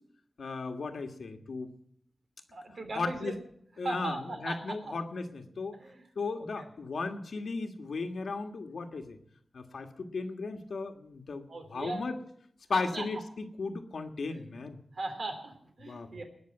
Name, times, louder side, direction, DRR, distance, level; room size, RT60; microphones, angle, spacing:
voice 1, 0.4-1.7 3.0-3.3 3.8-5.8 6.1-9.2 9.5-11.4 11.7-12.2 12.7-14.8 15.8-16.1, left 4 dB, 75° left, 5 dB, 1.6 m, -36 dB
voice 2, 2.5-3.4 3.8-4.6 4.9-5.0 5.7-6.1 6.3-6.7 11.5-12.0 12.7-13.0 14.3-14.5 14.9-16.2, right 2 dB, 60° right, 4 dB, 3.3 m, -38 dB
19.5 x 6.8 x 8.8 m, 0.68 s
wide cardioid pair, 120°, 0 cm